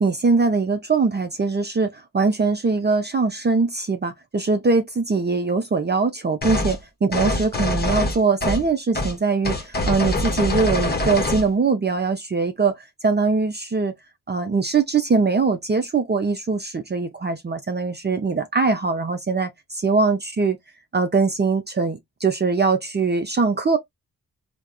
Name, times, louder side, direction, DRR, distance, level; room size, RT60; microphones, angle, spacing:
voice 1, 0.0-6.8 7.0-12.7 13.0-13.9 14.3-20.6 20.9-23.8, right 4 dB, 30° right, 0.6 m, -22 dB
sound 1, 6.4-6.8 7.1-8.7 8.9-9.1 9.4-11.5, left 1 dB, 25° left, 1.0 m, -24 dB
3.4 x 2.1 x 2.2 m
supercardioid pair, 45°, 37 cm